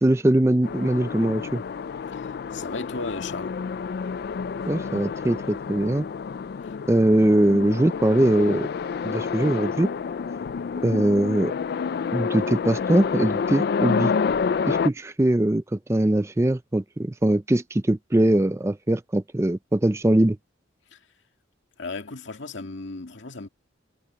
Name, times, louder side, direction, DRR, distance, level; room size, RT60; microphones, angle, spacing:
voice 1, 0.0-1.6 4.7-6.1 6.9-8.7 9.0-9.9 10.8-11.5 12.1-14.1 14.7-20.4, right 1 dB, 15° right, 0.4 m, -21 dB
sound 1, 0.6-14.9, left 5 dB, 50° left, 0.3 m, -29 dB
voice 2, 2.1-3.5 6.6-6.7 20.9-21.0 21.8-23.5, left 3 dB, 70° left, 2.2 m, -35 dB
head